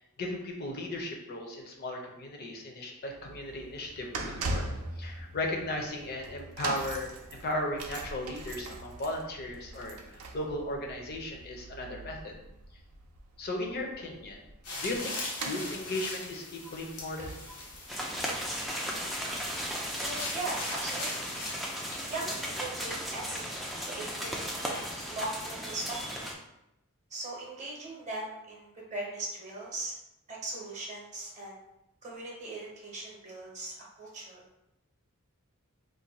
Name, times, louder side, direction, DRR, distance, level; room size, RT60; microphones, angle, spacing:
voice 1, 0.2-4.7 5.0-12.4 13.4-14.4 14.8-17.3, left 1 dB, 45° left, 1 dB, 0.6 m, -36 dB
sound 1, 3.1-19.4 19.7-19.9 20.7-20.8, right 2 dB, 75° right, 0.5 m, -42 dB
sound 2, 14.6-22.5, left 2 dB, 90° left, 0.8 m, -41 dB
sound 3, 17.9-26.3, equal, ahead, 0.3 m, -36 dB
voice 2, 20.0-21.3 21.8-26.2 27.1-29.9 30.3-31.6 32.0-34.4, right 2 dB, 35° right, -3 dB, 0.7 m, -40 dB
2.5 x 2.2 x 4.0 m, 0.88 s
head